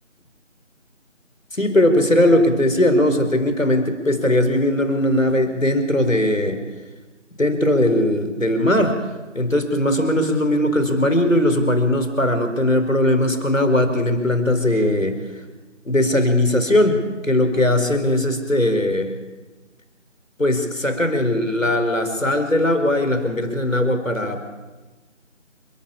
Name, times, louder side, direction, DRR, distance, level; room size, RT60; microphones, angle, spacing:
voice 1, 1.5-6.6 7.4-8.9 9.3-15.4 15.8-19.1 20.4-24.4, left 1 dB, 85° left, 7 dB, 4.7 m, -19 dB
30.0 x 12.0 x 8.6 m, 1.2 s
figure-of-eight pair, 170°, 38 cm